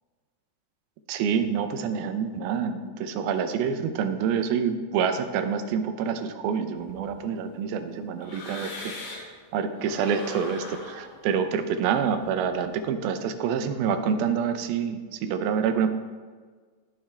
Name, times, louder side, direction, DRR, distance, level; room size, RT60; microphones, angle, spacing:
voice 1, 1.1-9.3 9.5-15.9, right 7 dB, 85° right, 9 dB, 2.6 m, -27 dB
sound 1, 6.8-9.4 9.7-12.8, left 3 dB, 50° left, 2.2 m, -42 dB
16.5 x 6.9 x 3.3 m, 1.5 s
omnidirectional pair, 4.2 m